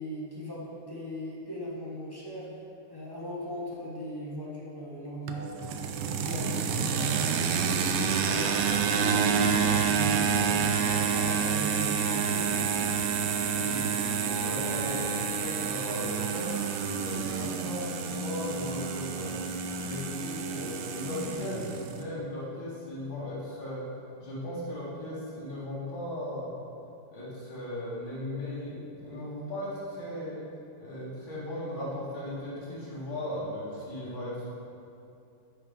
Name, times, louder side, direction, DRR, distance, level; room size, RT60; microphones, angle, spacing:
voice 1, 0.0-2.5 2.9-5.8 6.2-12.5, equal, 35° left, -6 dB, 0.3 m, -39 dB
sound 1, 5.3-22.0, right 6 dB, 85° right, 1.6 m, -28 dB
voice 2, 13.6-16.5 16.9-19.4 19.8-21.6 21.9-23.8 24.2-26.6 27.1-30.4 30.8-34.5, left 1 dB, 60° left, -9 dB, 2.9 m, -37 dB
9.4 x 5.9 x 3.7 m, 2.6 s
omnidirectional pair, 2.4 m